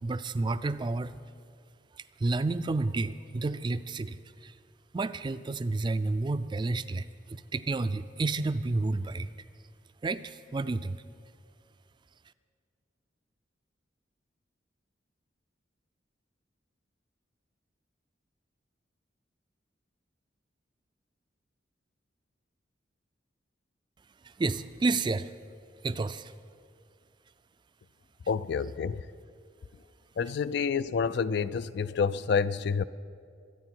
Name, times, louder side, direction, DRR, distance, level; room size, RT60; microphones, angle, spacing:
voice 1, 0.0-1.1 2.2-4.5 4.9-9.3 10.0-11.0 24.2-25.3 25.8-26.3, right 3 dB, 25° right, 13 dB, 0.4 m, -30 dB
voice 2, 28.3-29.0 30.2-32.8, left 6 dB, 65° left, 15 dB, 0.4 m, -28 dB
24.0 x 9.4 x 4.6 m, 2.3 s
head